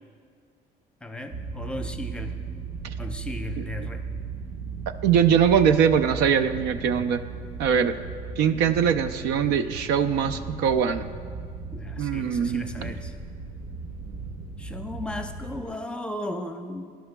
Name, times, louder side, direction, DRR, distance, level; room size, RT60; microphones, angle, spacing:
voice 1, 1.0-2.4 3.0-4.0 11.7-13.1 14.6-16.9, left 1 dB, 5° left, 5 dB, 0.7 m, -36 dB
sound 1, 1.3-15.6, right 4 dB, 60° right, 1.1 m, -37 dB
voice 2, 5.0-7.2 7.6-7.9 8.4-11.1 12.0-12.9, right 7 dB, 85° right, 10 dB, 0.5 m, -22 dB
16.5 x 11.5 x 2.3 m, 2.1 s
cardioid pair, 110°, 17 cm